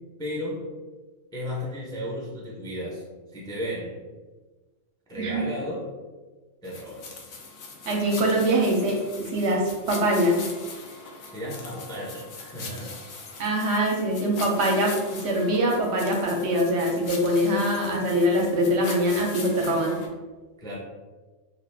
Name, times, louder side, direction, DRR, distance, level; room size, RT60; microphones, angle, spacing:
voice 1, 0.2-0.6 1.3-3.0 3.3-4.0 5.1-5.9 6.6-7.1 11.3-12.9 20.6-20.8, equal, 5° left, -5 dB, 0.5 m, -34 dB
sound 1, 6.7-20.1, left 4 dB, 85° left, 1.0 m, -41 dB
voice 2, 7.9-9.0 9.3-10.4 13.4-14.9 15.2-20.0, equal, 70° right, 0 dB, 0.9 m, -23 dB
2.8 x 2.4 x 3.3 m, 1.3 s
omnidirectional pair, 1.3 m